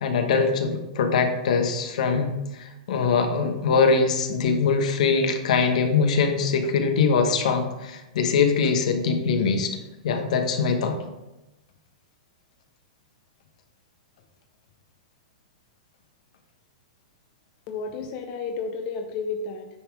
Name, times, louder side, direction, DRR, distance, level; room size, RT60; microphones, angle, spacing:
voice 1, 0.0-9.7 10.0-11.0, left 5 dB, 70° left, 5 dB, 1.1 m, -22 dB
voice 2, 17.7-19.7, left 4 dB, 40° left, 4 dB, 0.7 m, -32 dB
9.7 x 3.5 x 4.8 m, 0.99 s
hypercardioid pair, 135°, 4 cm